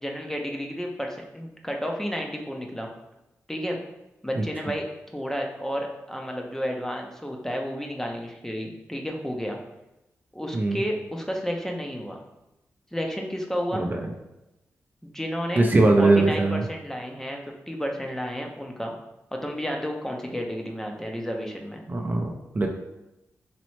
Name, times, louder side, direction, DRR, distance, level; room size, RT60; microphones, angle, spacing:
voice 1, 0.0-2.9 3.5-3.8 4.2-4.9 5.1-9.6 10.3-12.2 12.9-13.8 15.0-15.7 16.0-17.4 17.7-18.9 19.3-21.8, equal, 10° left, 1 dB, 0.7 m, -31 dB
voice 2, 15.6-16.6 21.9-22.7, right 2 dB, 35° right, 2 dB, 0.6 m, -21 dB
4.1 x 3.0 x 3.1 m, 0.92 s
cardioid pair, 55°, 5 cm